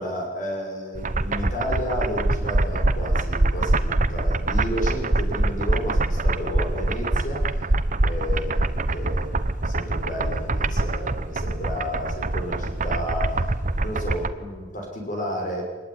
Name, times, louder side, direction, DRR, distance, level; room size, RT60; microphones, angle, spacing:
voice 1, 0.0-7.5 8.0-15.6, equal, 45° left, 1 dB, 6.6 m, -32 dB
sound 1, 1.0-14.3, right 2 dB, 40° right, 1.1 m, -24 dB
24.5 x 21.0 x 9.8 m, 1.3 s
head